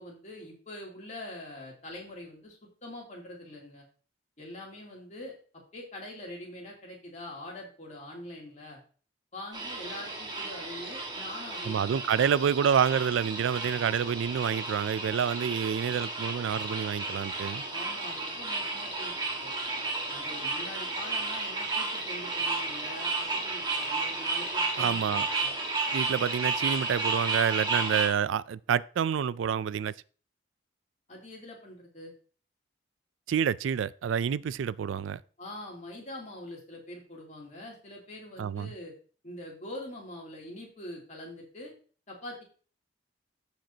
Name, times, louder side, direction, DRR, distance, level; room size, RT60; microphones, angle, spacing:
voice 1, 0.0-3.8 4.4-5.3 5.7-8.8 9.3-11.9 17.7-19.5 20.1-25.5 31.1-32.1 35.4-38.9 39.2-41.7 42.1-42.4, left 1 dB, 40° left, 2.8 m, -44 dB
sound 1, 9.5-28.1, right 3 dB, 20° right, 1.6 m, -33 dB
voice 2, 11.7-17.6 24.8-25.3 25.9-29.9 33.3-35.2 38.4-38.7, right 7 dB, 85° right, 0.3 m, -28 dB
14.5 x 5.2 x 2.8 m
head